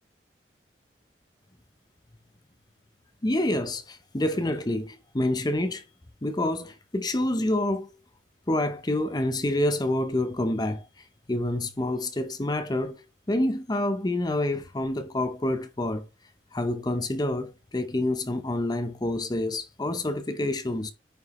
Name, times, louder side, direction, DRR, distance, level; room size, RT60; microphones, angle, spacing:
voice 1, 3.2-5.8 6.2-7.9 8.5-10.9 11.3-13.0 13.3-16.0 16.5-20.9, left 1 dB, 25° left, 0.7 m, -27 dB
9.6 x 5.2 x 3.1 m
head